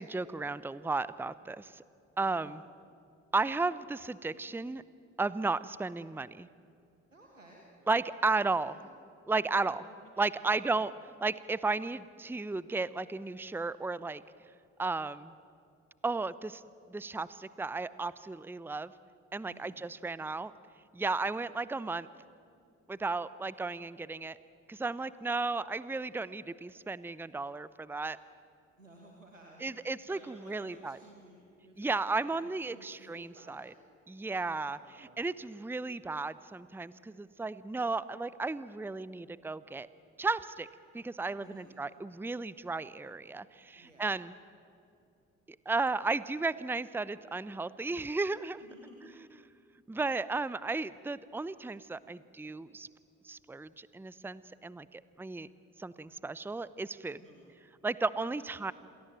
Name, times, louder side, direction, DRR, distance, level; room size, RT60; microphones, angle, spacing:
voice 1, 0.0-1.8 2.2-2.6 3.3-4.8 5.2-6.5 7.9-8.7 9.3-9.8 10.2-10.9 11.2-14.2 14.8-15.3 16.0-16.6 16.9-18.9 19.3-20.5 20.9-22.1 22.9-24.4 24.7-28.2 29.6-31.0 31.8-33.7 34.1-39.9 40.2-40.7 40.9-44.3 45.7-48.6 49.9-52.9 53.2-55.5 55.8-57.2 57.8-58.7, right 3 dB, 5° right, 17 dB, 0.8 m, -34 dB
voice 2, 2.2-2.6 7.1-8.0 8.4-8.9 9.4-10.7 19.4-19.8 28.8-29.7 30.1-33.8 34.4-35.3 41.4-41.8 43.8-44.1 48.6-49.3 57.2-57.5 58.2-58.6, right 2 dB, 90° right, 0 dB, 1.7 m, -57 dB
28.5 x 22.0 x 7.7 m, 2.5 s
figure-of-eight pair, 45°, 38 cm